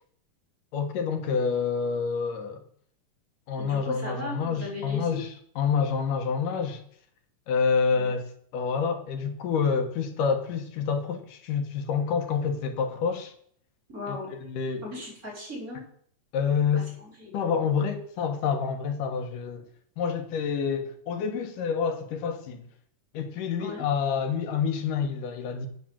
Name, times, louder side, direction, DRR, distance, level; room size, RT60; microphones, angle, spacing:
voice 1, 0.7-2.6 3.5-5.3 5.6-6.8 7.5-8.3 8.5-13.3 14.1-14.9 16.3-16.9 17.3-19.7 20.0-22.7 23.1-25.7, left 6 dB, 85° left, 2.9 m, -28 dB
voice 2, 3.6-5.2 7.9-8.1 13.9-14.3 14.8-15.8 17.0-17.4 23.6-23.9, left 2 dB, 25° right, 5.7 m, -37 dB
10.0 x 8.1 x 7.3 m
omnidirectional pair, 3.6 m